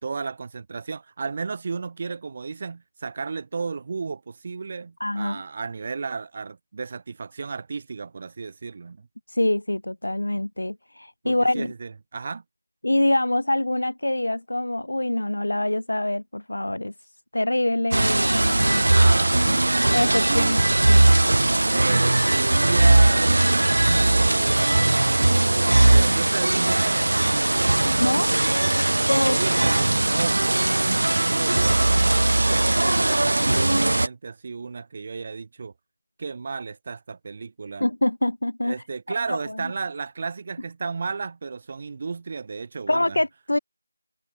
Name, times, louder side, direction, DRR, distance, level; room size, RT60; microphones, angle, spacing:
voice 1, 0.0-9.1 11.2-12.4 18.9-20.7 21.7-23.4 23.9-25.2 25.9-27.2 29.3-30.5 31.3-35.7 36.2-37.9 38.6-43.2, right 4 dB, 20° right, 4.5 m, -33 dB
voice 2, 5.0-5.4 9.3-11.7 12.8-16.9 17.3-18.8 19.5-19.6 19.9-21.0 27.9-28.3 29.1-29.4 37.8-38.7 39.3-39.4 42.9-43.6, left 1 dB, 70° left, 4.8 m, -25 dB
sound 1, 17.9-34.1, right 2 dB, 55° right, 2.7 m, -19 dB
figure-of-eight pair, 175°, 0 cm